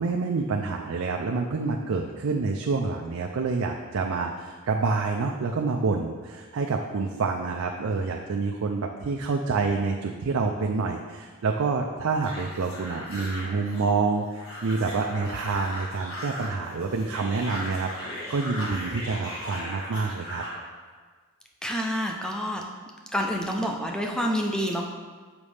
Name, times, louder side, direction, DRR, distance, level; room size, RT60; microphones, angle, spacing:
voice 1, 0.0-20.4, right 4 dB, 70° right, 1 dB, 0.4 m, -27 dB
sound 1, 12.2-20.6, equal, 60° left, 1.7 m, -38 dB
voice 2, 21.6-22.6 23.1-24.9, equal, 5° left, 1 dB, 0.5 m, -28 dB
7.1 x 5.1 x 3.3 m, 1.5 s
head